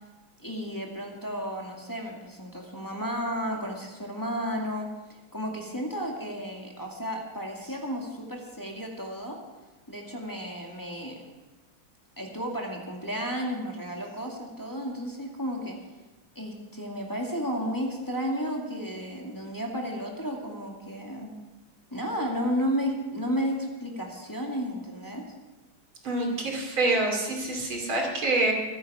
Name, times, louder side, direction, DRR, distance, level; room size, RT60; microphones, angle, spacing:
voice 1, 0.4-4.9 5.3-9.4 9.9-11.2 12.2-15.8 16.4-21.3 21.9-25.3, equal, 10° left, -1 dB, 2.1 m, -33 dB
voice 2, 26.0-28.5, right 2 dB, 90° right, 1 dB, 3.7 m, -26 dB
23.0 x 10.0 x 4.9 m, 1.2 s
omnidirectional pair, 2.2 m